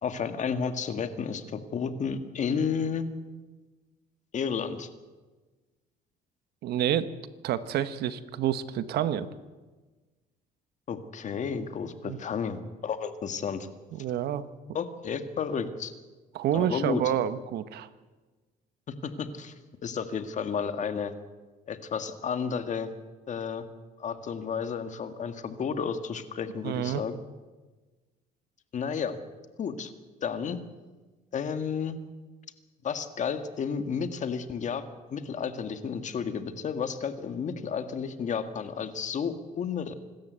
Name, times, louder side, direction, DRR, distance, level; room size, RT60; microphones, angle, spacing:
voice 1, 0.0-3.1 4.3-4.9 10.9-13.7 14.7-15.9 16.5-17.0 19.0-19.5 19.8-21.1 21.7-22.9 23.3-23.7 24.0-27.2 28.7-29.2 29.6-29.9 30.2-30.6 31.3-32.0 32.8-34.9 35.1-39.9, left 6 dB, 45° left, 9 dB, 1.8 m, -32 dB
voice 2, 6.6-7.1 7.4-9.3 12.0-12.2 13.9-14.4 16.3-17.9 26.6-27.0, right 10 dB, 75° right, 13 dB, 1.2 m, -28 dB
26.0 x 13.0 x 8.1 m, 1.3 s
cardioid pair, 110°, 17 cm